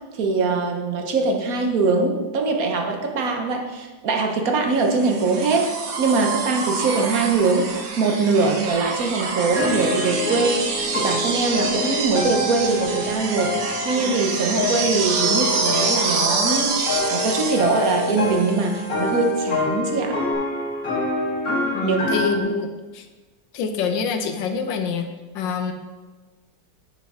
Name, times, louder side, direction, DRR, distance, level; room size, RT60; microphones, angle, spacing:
voice 1, 0.2-5.7 6.0-7.7 8.0-16.7 17.1-20.2 21.8-22.0, right 4 dB, 55° right, 3 dB, 1.3 m, -22 dB
sound 1, 4.9-18.9 20.3-20.4, right 4 dB, 80° right, 1.8 m, -27 dB
sound 2, 9.5-22.4, left 2 dB, 45° left, 2.3 m, -26 dB
voice 2, 21.7-23.1 23.5-25.1 25.3-25.7, left 5 dB, 75° left, 6 dB, 1.4 m, -25 dB
9.0 x 6.4 x 3.7 m, 1.3 s
omnidirectional pair, 2.1 m